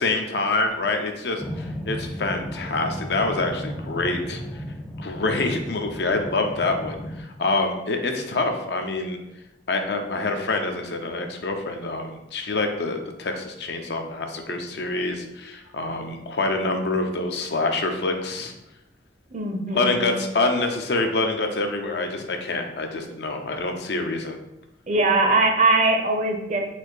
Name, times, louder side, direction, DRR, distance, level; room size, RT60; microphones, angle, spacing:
voice 1, 0.0-4.4 5.0-9.2 9.7-18.5 19.7-24.4, left 2 dB, 65° left, 4 dB, 0.6 m, -26 dB
sound 1, 1.4-7.2, equal, 5° left, 0.4 m, -35 dB
voice 2, 19.3-20.2 24.9-26.6, right 2 dB, 40° right, 3 dB, 0.6 m, -21 dB
4.1 x 2.7 x 4.7 m, 0.88 s
head